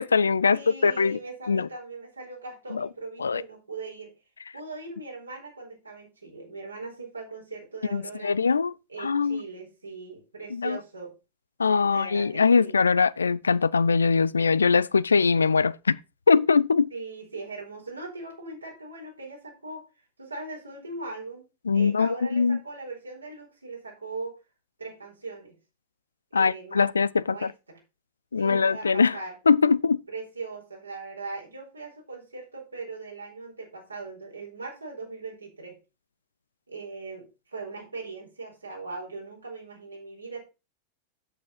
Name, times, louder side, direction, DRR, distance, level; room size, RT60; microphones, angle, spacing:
voice 1, 0.0-1.2 1.5-1.7 2.7-2.9 3.2-3.4 7.9-8.7 9.0-9.4 10.5-10.8 11.6-16.0 16.3-16.9 21.7-22.6 26.3-27.5 28.3-29.2 29.5-30.0, left 5 dB, 75° left, 0.4 m, -22 dB
voice 2, 0.5-4.1 4.5-8.4 8.9-11.1 11.8-12.7 16.9-19.9 20.2-21.5 21.7-24.3 24.8-25.5 26.3-26.9 27.1-27.8 28.4-29.3 30.1-35.8 36.7-40.5, right 3 dB, 80° right, 4.6 m, -39 dB
8.4 x 8.1 x 4.2 m
figure-of-eight pair, 90°, 0 cm